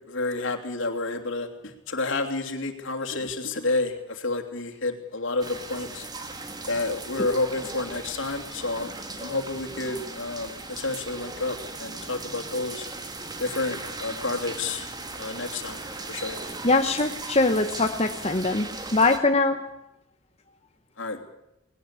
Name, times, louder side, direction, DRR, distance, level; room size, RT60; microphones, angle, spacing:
voice 1, 0.1-6.1 6.7-8.9 9.2-12.9 13.4-14.9 15.2-15.8 16.1-16.4 21.0-21.2, left 2 dB, 60° left, 3 dB, 3.1 m, -30 dB
sound 1, 5.4-19.2, right 3 dB, 20° right, 1.9 m, -38 dB
voice 2, 16.6-19.6, left 3 dB, 30° left, 5 dB, 1.0 m, -22 dB
19.5 x 19.0 x 8.4 m, 0.86 s
head